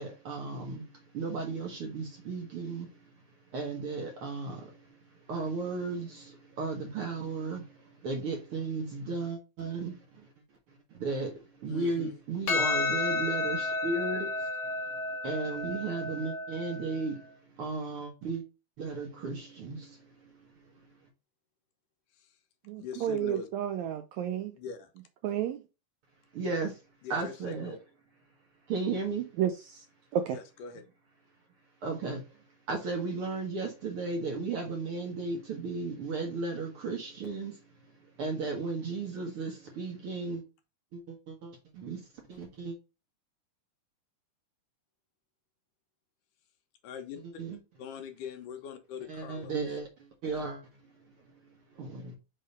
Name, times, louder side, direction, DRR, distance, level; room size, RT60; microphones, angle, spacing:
voice 1, 0.0-10.3 10.7-14.9 15.2-18.4 18.8-20.9 26.3-26.8 27.1-27.7 28.7-29.3 31.8-40.4 40.9-42.8 47.2-47.6 49.1-50.9 51.4-52.2, right 3 dB, 60° right, 1.6 m, -35 dB
voice 2, 11.7-12.2 22.1-22.4 22.8-23.5 24.5-24.9 27.0-27.8 30.3-30.8 46.8-47.2 47.8-49.6, left 7 dB, 75° left, 2.5 m, -42 dB
Percussion, 12.5-17.1, left 3 dB, 60° left, 2.6 m, -32 dB
voice 3, 22.7-24.5 25.2-25.6 29.4-29.8 30.1-30.4, right 10 dB, 80° right, 1.6 m, -31 dB
5.5 x 3.6 x 5.1 m
omnidirectional pair, 3.7 m